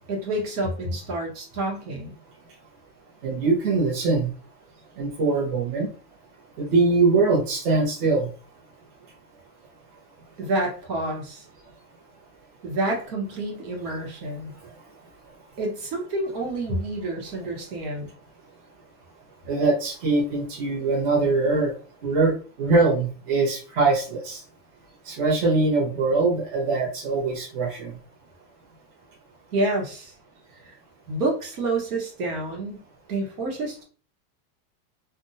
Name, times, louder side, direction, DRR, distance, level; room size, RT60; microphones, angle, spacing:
voice 1, 0.1-2.1 10.4-11.5 12.6-14.5 15.6-18.1 29.5-30.1 30.6-30.8 31.1-32.8 33.1-33.8, right 2 dB, 75° right, 0 dB, 1.2 m, -28 dB
voice 2, 3.2-4.3 5.0-5.9 6.6-8.3 14.6-14.8 19.4-21.7 22.0-24.4 25.0-28.0, right 3 dB, 45° right, -4 dB, 1.0 m, -22 dB
2.6 x 2.2 x 2.6 m, 0.40 s
supercardioid pair, 170°, 46 cm